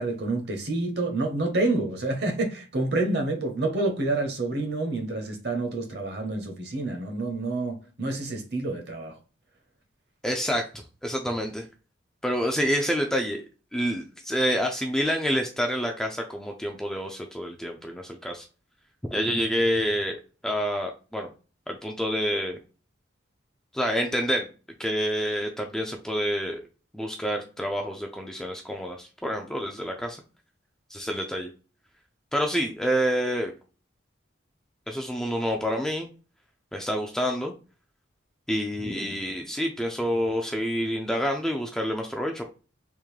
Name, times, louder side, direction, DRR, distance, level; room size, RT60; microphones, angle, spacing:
voice 1, 0.0-9.2, right 2 dB, 55° right, 0.9 m, -28 dB
voice 2, 10.2-11.7 12.2-13.4 13.7-18.4 19.1-21.3 21.7-22.6 23.7-24.5 24.8-26.6 26.9-30.2 30.9-31.5 32.3-33.5 34.9-36.1 36.7-37.5 38.5-42.4, equal, 5° left, 0.3 m, -28 dB
3.6 x 2.5 x 3.1 m
head